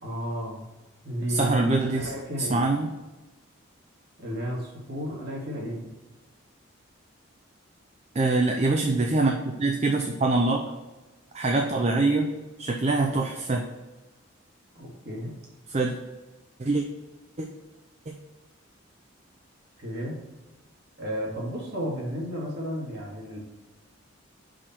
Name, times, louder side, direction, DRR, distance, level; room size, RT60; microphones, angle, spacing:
voice 1, 0.0-0.6 1.0-2.6 4.2-5.9 13.1-13.2 14.8-15.4 19.8-20.2 21.0-23.4, equal, 55° right, -3 dB, 2.1 m, -33 dB
voice 2, 1.3-2.1 2.5-2.9 8.1-10.6 11.3-12.3 12.6-13.7 15.7-15.9 16.6-16.8 17.4-17.5, right 3 dB, 35° right, 2 dB, 0.5 m, -24 dB
5.7 x 4.9 x 4.3 m, 1.1 s
head